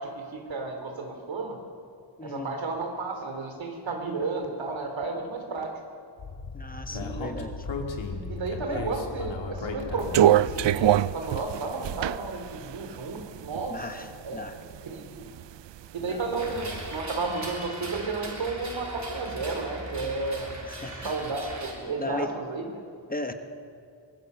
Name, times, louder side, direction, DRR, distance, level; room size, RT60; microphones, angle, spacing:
voice 1, 0.0-1.6 2.2-5.8 6.9-7.5 8.3-15.2 15.9-20.6 21.0-22.8, right 3 dB, 85° right, 4 dB, 3.0 m, -33 dB
voice 2, 2.2-2.6 6.5-7.5 8.7-8.8 13.7-14.1 14.3-14.5 16.1-16.2 20.7-21.1 22.0-22.3 23.1-23.3, left 2 dB, 20° left, 7 dB, 1.1 m, -36 dB
Speech, 6.2-11.1, left 4 dB, 85° left, 2.4 m, -36 dB
sound 1, 10.0-14.0 14.4-15.4 15.8-16.8, right 12 dB, 70° right, 0.5 m, -24 dB
sound 2, 16.4-21.7, right 2 dB, 40° right, 3.4 m, -39 dB
23.5 x 20.0 x 6.7 m, 2.4 s
wide cardioid pair, 160°, 45 cm